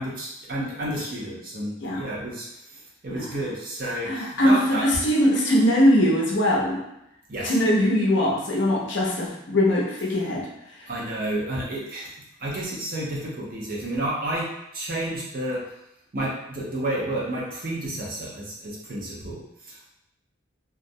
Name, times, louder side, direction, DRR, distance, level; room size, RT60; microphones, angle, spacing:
voice 1, 0.0-4.8 7.3-7.6 10.9-12.1 12.4-14.5 14.7-15.6 16.1-19.9, right 1 dB, 45° right, -5 dB, 0.6 m, -31 dB
voice 2, 4.0-6.8 7.4-10.5, equal, 60° left, -2 dB, 0.5 m, -21 dB
2.3 x 2.0 x 2.6 m, 0.81 s
head